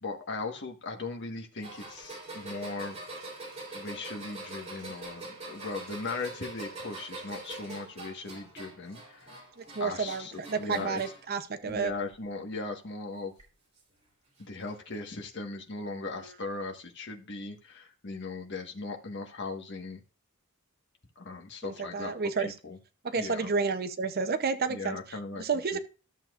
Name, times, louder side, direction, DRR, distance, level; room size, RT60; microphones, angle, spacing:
voice 1, 0.0-3.0 3.7-9.4 9.8-11.0 11.6-13.3 14.4-20.0 21.2-22.1 22.4-22.8 23.1-23.5 24.7-25.4 25.7-25.8, left 3 dB, 55° left, 2 dB, 1.4 m, -38 dB
sound 1, 1.6-11.3 11.7-12.3 13.4-13.5 14.6-14.7, right 2 dB, 30° right, 3.2 m, -44 dB
voice 2, 9.6-11.9 16.1-16.2 21.6-22.5 23.0-25.0 25.4-25.8, right 5 dB, 45° right, 10 dB, 0.7 m, -31 dB
13.0 x 7.2 x 2.4 m, 0.33 s
head